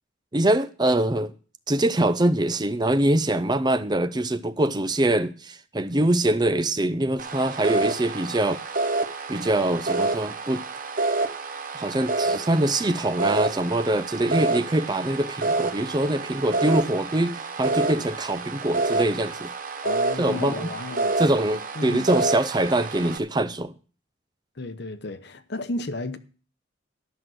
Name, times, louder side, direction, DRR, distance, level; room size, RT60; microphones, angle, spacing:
voice 1, 0.3-1.3 1.7-8.6 9.3-10.6 11.7-19.5 20.2-20.7 21.2-23.7, right 1 dB, 20° right, 0.5 m, -24 dB
sound 1, 7.2-23.2, right 3 dB, 45° right, 1.2 m, -28 dB
voice 2, 19.8-21.2 21.8-22.1 24.6-26.2, left 2 dB, 60° left, 0.9 m, -33 dB
12.5 x 6.2 x 7.7 m
head